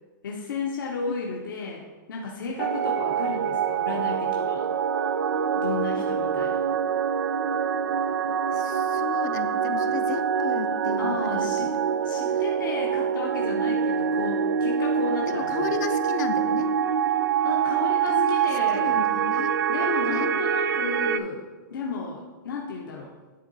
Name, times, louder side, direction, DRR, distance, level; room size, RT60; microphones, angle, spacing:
voice 1, 0.2-4.7 5.5-6.6 11.0-11.7 12.0-15.7 17.4-19.0 19.7-23.1, left 4 dB, 80° left, -2 dB, 1.1 m, -33 dB
sound 1, 2.6-21.2, right 7 dB, 85° right, 0.4 m, -25 dB
voice 2, 8.5-12.0 15.3-16.7 18.1-19.6 20.1-20.3, left 8 dB, 60° left, 9 dB, 0.7 m, -34 dB
10.5 x 3.7 x 4.1 m, 1.3 s
hypercardioid pair, 150°, 11 cm